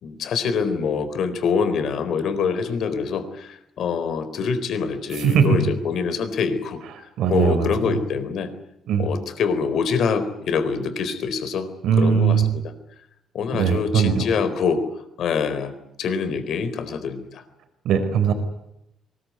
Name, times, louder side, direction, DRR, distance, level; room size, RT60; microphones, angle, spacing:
voice 1, 0.0-6.8 7.3-8.5 9.0-11.7 12.0-12.7 13.3-14.8 15.2-15.7 16.0-17.4, left 5 dB, 60° left, 10 dB, 4.1 m, -25 dB
voice 2, 5.1-5.6 6.9-7.9 8.9-9.1 11.8-12.5 13.5-14.3 17.8-18.3, right 7 dB, 75° right, 7 dB, 4.5 m, -20 dB
23.5 x 21.0 x 9.6 m, 0.82 s
cardioid pair, 140°, 0 cm